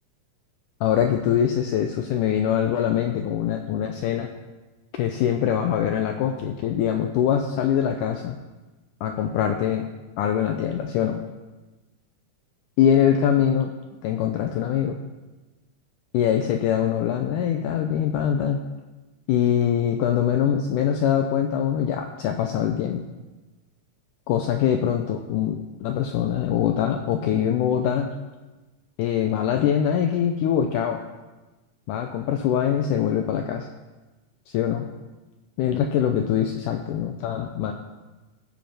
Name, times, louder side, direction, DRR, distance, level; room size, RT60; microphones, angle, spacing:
voice 1, 0.8-4.3 5.0-8.4 9.0-9.9 10.2-11.2 12.8-13.7 14.0-15.0 16.1-18.6 19.3-23.0 24.3-28.1 29.0-31.0 31.9-33.7 34.5-34.9 35.6-37.7, left 9 dB, 85° left, 5 dB, 1.8 m, -23 dB
16.0 x 5.3 x 5.8 m, 1.2 s
omnidirectional pair, 4.2 m